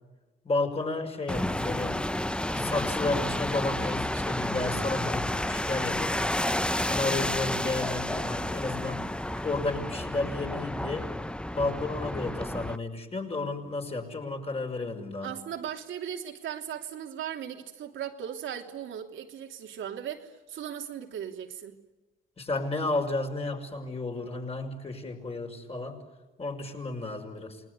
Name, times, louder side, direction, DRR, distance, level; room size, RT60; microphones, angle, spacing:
voice 1, 0.4-2.0 2.4-6.1 6.9-9.0 9.4-11.1 11.5-15.3 22.4-26.0 26.4-27.6, left 2 dB, 30° left, 5.8 m, -32 dB
sound 1, 1.3-12.8, left 1 dB, 5° left, 0.9 m, -31 dB
voice 2, 15.2-21.8, right 9 dB, 75° right, 3.1 m, -37 dB
28.5 x 20.5 x 9.7 m
cardioid pair, 90°, 20 cm